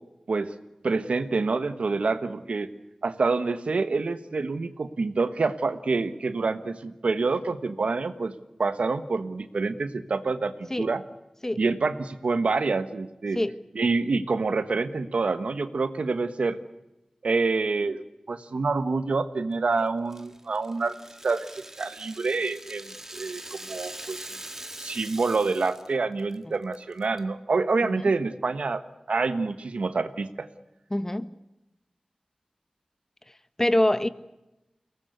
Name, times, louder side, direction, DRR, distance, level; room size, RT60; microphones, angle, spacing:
voice 1, 0.8-2.7 3.0-8.3 8.6-11.0 11.6-13.4 13.7-16.6 17.2-20.9 21.2-24.3 24.8-28.8 29.1-30.5, right 4 dB, 85° right, 11 dB, 1.4 m, -27 dB
Rattle (instrument), 20.1-25.9 26.2-26.3 26.7-27.2, right 1 dB, 20° right, 1.7 m, -42 dB
voice 2, 27.8-28.1 30.9-31.3 33.6-34.1, left 1 dB, 20° left, 13 dB, 1.3 m, -25 dB
23.0 x 19.0 x 8.2 m, 0.96 s
wide cardioid pair, 60°, 2 cm